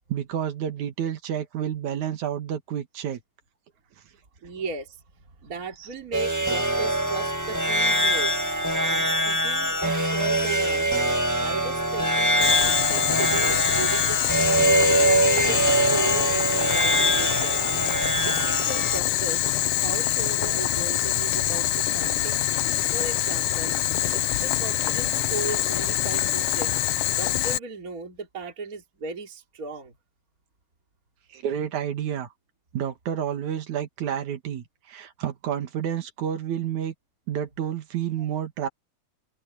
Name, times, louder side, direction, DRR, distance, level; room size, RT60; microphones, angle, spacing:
voice 1, 0.1-3.2 5.8-5.9 31.3-32.3 32.7-36.9 37.3-38.7, right 9 dB, 80° right, 3.0 m, -30 dB
voice 2, 4.4-5.0 5.4-8.4 8.8-11.0 11.4-17.6 18.2-19.4 19.8-22.4 22.9-23.7 24.1-26.8 27.2-29.9, right 4 dB, 30° right, 3.2 m, -36 dB
sound 1, 6.1-19.0, right 1 dB, 10° right, 0.9 m, -23 dB
Boiling, 12.4-27.6, left 13 dB, 85° left, 1.2 m, -25 dB
open air
omnidirectional pair, 3.3 m